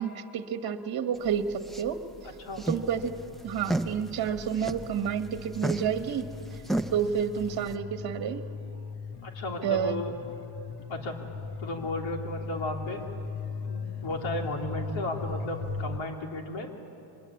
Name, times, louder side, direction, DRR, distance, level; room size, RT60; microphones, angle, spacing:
voice 1, 0.0-2.0 2.7-3.1 3.4-6.3 6.9-8.5 9.6-10.0, right 8 dB, 45° right, 8 dB, 1.4 m, -29 dB
sound 1, 1.1-7.7, right 1 dB, ahead, 0.7 m, -35 dB
sound 2, 2.5-16.0, left 4 dB, 50° left, 1.4 m, -39 dB
voice 2, 9.2-10.1 10.9-11.1 11.6-13.0 13.7-16.7, left 1 dB, 65° left, 2 dB, 3.4 m, -34 dB
25.0 x 21.5 x 8.5 m, 2.9 s
cardioid pair, 125°, 49 cm